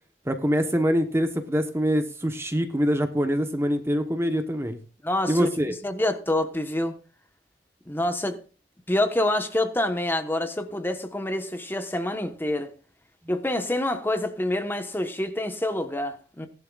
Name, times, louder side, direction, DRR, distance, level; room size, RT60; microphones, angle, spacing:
voice 1, 0.3-4.8 5.3-5.7, equal, 15° right, 1.0 m, -24 dB
voice 2, 5.0-5.5 5.8-6.9 7.9-8.4 8.9-12.7 13.3-16.5, left 1 dB, 10° left, 1.1 m, -27 dB
17.5 x 11.0 x 2.4 m
head